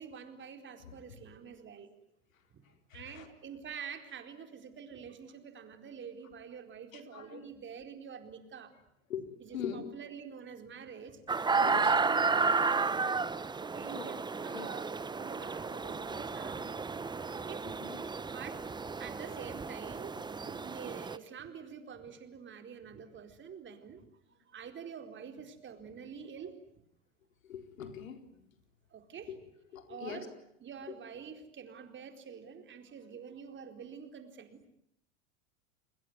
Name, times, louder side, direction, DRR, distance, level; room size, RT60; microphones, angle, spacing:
voice 1, 0.0-2.0 2.5-2.6 2.9-8.8 9.4-12.6 13.6-14.9 15.1-16.7 17.3-17.7 18.3-18.6 19.0-20.1 20.4-24.0 24.5-26.6 28.9-29.3 29.9-30.3 30.6-34.6, right 7 dB, 30° right, 7 dB, 4.4 m, -47 dB
voice 2, 2.9-3.3 6.9-7.4 9.1-9.3 9.5-9.9 11.6-11.9 13.0-13.1 13.9-14.1 14.5-14.7 17.8-18.0 27.5-28.2 29.3-29.4 29.7-30.2, left 8 dB, 85° left, 7 dB, 4.5 m, -41 dB
sound 1, 11.3-21.2, right 4 dB, 10° right, 1.0 m, -32 dB
29.0 x 21.0 x 9.5 m, 0.73 s
hypercardioid pair, 105°, 39 cm